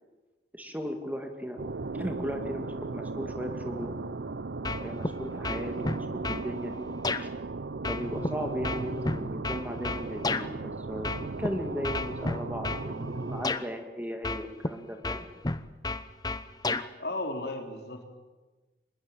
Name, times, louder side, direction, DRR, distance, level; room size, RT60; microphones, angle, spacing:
voice 1, 0.5-1.6 1.9-4.0 4.8-6.9 7.2-7.3 7.9-15.3, equal, 10° right, 5 dB, 2.3 m, -36 dB
sound 1, 1.6-13.5, right 3 dB, 80° right, 0.7 m, -36 dB
sound 2, 4.6-5.1 5.4-6.5 7.0-7.2 7.8-10.5 11.0-11.5 11.8-12.9 13.4-13.6 14.2-14.7 15.0-16.9, left 3 dB, 20° left, 0.9 m, -31 dB
voice 2, 17.0-18.1, left 2 dB, 65° left, 4 dB, 4.0 m, -34 dB
25.0 x 21.0 x 9.1 m, 1.2 s
head